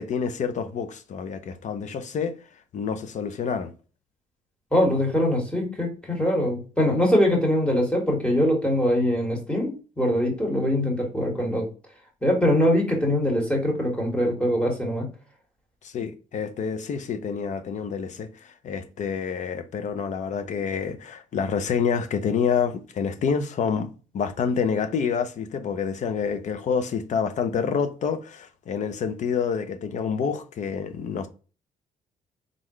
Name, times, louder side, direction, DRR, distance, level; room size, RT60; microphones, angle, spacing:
voice 1, 0.0-2.3 2.7-3.7 15.8-23.9 24.1-31.3, left 6 dB, 60° left, 0.6 m, -28 dB
voice 2, 4.7-11.7 12.2-15.1, equal, 10° left, 1.9 m, -23 dB
3.8 x 3.7 x 3.1 m
cardioid pair, 95°, 14 cm